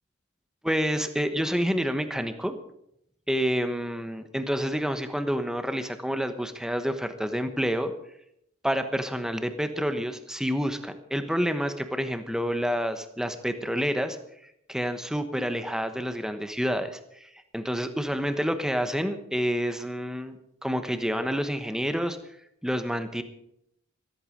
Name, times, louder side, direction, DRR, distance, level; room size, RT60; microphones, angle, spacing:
voice 1, 0.6-2.6 3.3-7.9 8.6-14.2 14.7-17.3 17.5-22.2 22.6-23.2, equal, 5° right, 8 dB, 1.1 m, -28 dB
14.5 x 14.0 x 5.1 m, 0.76 s
head